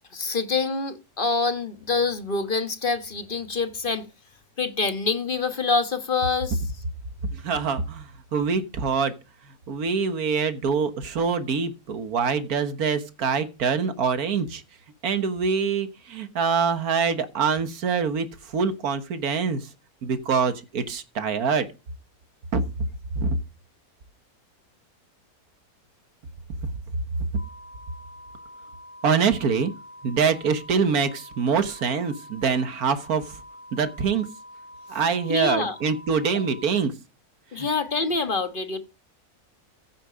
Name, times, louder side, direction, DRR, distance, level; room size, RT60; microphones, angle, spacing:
voice 1, 0.1-4.0 4.6-6.6 35.3-35.7 37.5-38.8, left 4 dB, 35° left, 1.3 m, -26 dB
voice 2, 7.4-9.1 9.7-14.6 15.0-18.3 18.5-19.7 20.0-21.7 22.5-22.6 23.2-23.3 29.0-29.7 30.0-33.4 33.7-34.3 34.9-36.9 37.6-37.7, right 5 dB, 75° right, 1.8 m, -24 dB
sound 1, 27.4-36.9, left 1 dB, 5° right, 2.8 m, -46 dB
15.0 x 7.5 x 5.1 m
omnidirectional pair, 1.6 m